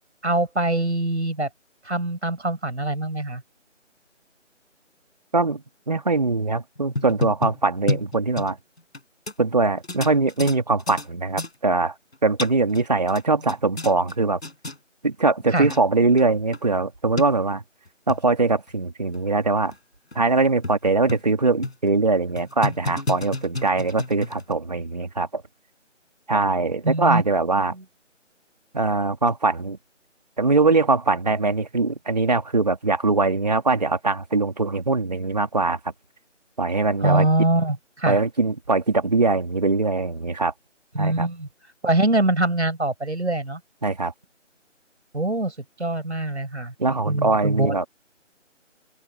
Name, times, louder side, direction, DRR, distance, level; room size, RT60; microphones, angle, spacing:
voice 1, 0.2-1.5 1.8-3.4 15.5-15.7 26.8-27.2 27.7-27.8 37.0-38.2 40.9-41.5 41.8-43.6 45.1-45.5 45.8-46.7 47.1-47.7, right 2 dB, 65° right, 5.4 m, -23 dB
voice 2, 5.3-8.6 9.4-11.9 12.2-14.4 15.0-17.6 18.1-19.7 20.1-25.4 26.3-27.7 28.7-29.8 30.4-35.8 36.6-37.3 38.1-40.5 41.0-41.3 43.8-44.1 46.8-47.9, right 3 dB, 35° right, 3.0 m, -22 dB
sound 1, 6.8-9.0 9.3-9.4 9.8-11.1 11.4-11.5 12.1-12.8 13.1-14.1 14.4-14.8 15.4-15.5 15.7-15.8 16.2-16.3 16.5-16.6 17.2-17.3 17.9-18.2 18.7-18.8 19.1-19.2 19.7-19.8 20.1-20.2 20.6-21.3 21.6-21.9 22.4-24.5, left 2 dB, 60° left, 6.3 m, -30 dB
open air
figure-of-eight pair, 170°, 37 cm